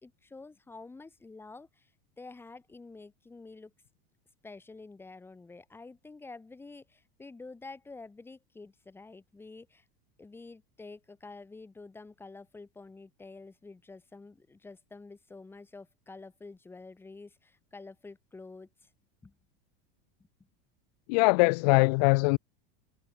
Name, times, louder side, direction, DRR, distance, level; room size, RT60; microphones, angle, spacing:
voice 1, 0.0-1.9 2.2-3.7 4.4-9.8 10.2-18.9 19.2-19.3, left 3 dB, 5° left, 7.7 m, -48 dB
voice 2, 21.1-22.4, left 30 dB, 45° left, 0.5 m, -22 dB
supercardioid pair, 175°, 30 cm